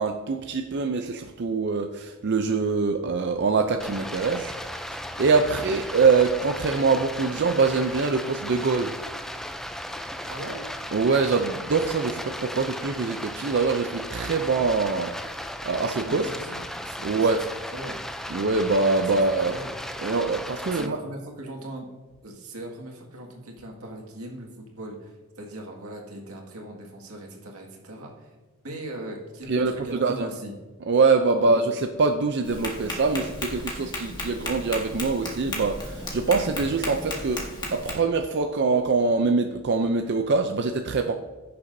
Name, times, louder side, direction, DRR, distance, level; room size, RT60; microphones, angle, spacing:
voice 1, 0.0-8.9 10.2-10.3 10.9-16.3 17.0-17.4 18.3-19.6 20.0-21.0 29.5-29.7 30.0-30.3 30.9-41.2, right 4 dB, 50° right, 5 dB, 0.5 m, -24 dB
Stream, 3.8-20.9, equal, ahead, 0.4 m, -36 dB
voice 2, 10.3-10.6 16.1-18.0 19.1-19.7 20.7-21.9 22.2-28.4 28.6-30.5 31.3-31.6, right 1 dB, 90° right, 0 dB, 2.0 m, -39 dB
Tap, 32.4-37.9, left 1 dB, 20° left, 1.7 m, -34 dB
16.0 x 6.8 x 2.7 m, 1.3 s
head